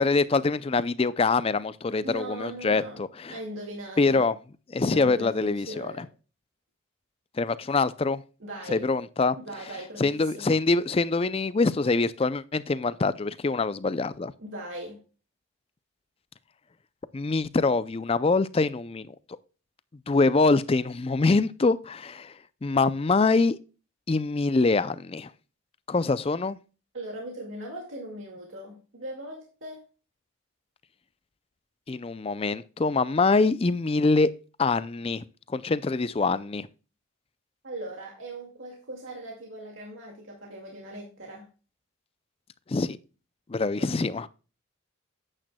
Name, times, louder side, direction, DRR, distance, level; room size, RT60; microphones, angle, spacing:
voice 1, 0.0-3.3 4.0-4.3 4.7-6.1 7.4-8.2 8.7-9.4 10.0-14.3 17.1-19.1 20.1-22.3 22.6-23.6 24.1-25.3 25.9-26.6 31.9-34.3 34.6-36.7 42.7-43.0 43.5-44.3, left 3 dB, 25° left, 0.4 m, -24 dB
voice 2, 2.0-4.2 4.8-6.1 8.4-8.9 9.4-10.5 14.4-15.0 26.9-29.8 37.6-41.5 43.8-44.0, right 1 dB, 65° right, 2.1 m, -39 dB
10.0 x 8.9 x 2.2 m
head